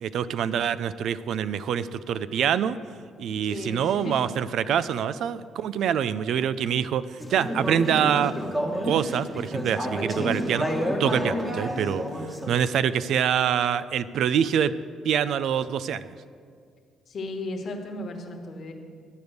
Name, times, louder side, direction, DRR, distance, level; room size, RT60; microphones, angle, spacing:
voice 1, 0.0-2.8 3.2-7.0 7.3-8.3 8.8-10.7 11.0-12.0 12.5-14.7 15.0-16.1, right 8 dB, 75° right, 15 dB, 0.3 m, -25 dB
voice 2, 3.4-4.4 4.7-4.8 10.1-10.4 17.1-18.7, left 1 dB, 55° left, 3 dB, 1.4 m, -35 dB
Conversation / Chatter, 7.2-12.6, equal, 10° right, 1.3 m, -29 dB
11.5 x 5.2 x 7.9 m, 2.1 s
cardioid pair, 90°, 0 cm